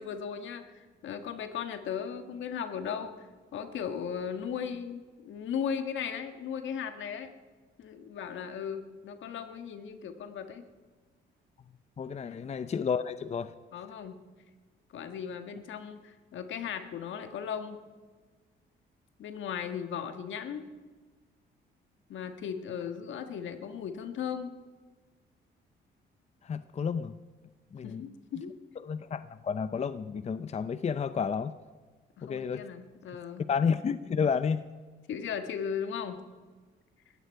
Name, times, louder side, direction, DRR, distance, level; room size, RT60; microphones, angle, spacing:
voice 1, 0.0-3.2 3.5-7.3 7.8-10.6 12.2-12.4 13.7-14.2 14.9-17.8 19.2-20.7 22.1-24.6 27.8-28.5 32.2-33.5 35.1-36.2, left 7 dB, 75° left, 8 dB, 1.6 m, -37 dB
voice 2, 12.0-13.5 26.4-27.1 27.7-28.1 28.8-31.5 32.2-32.6 33.5-34.7, left 6 dB, 35° left, 13 dB, 0.6 m, -31 dB
19.5 x 15.0 x 4.7 m, 1.4 s
cardioid pair, 90°, 20 cm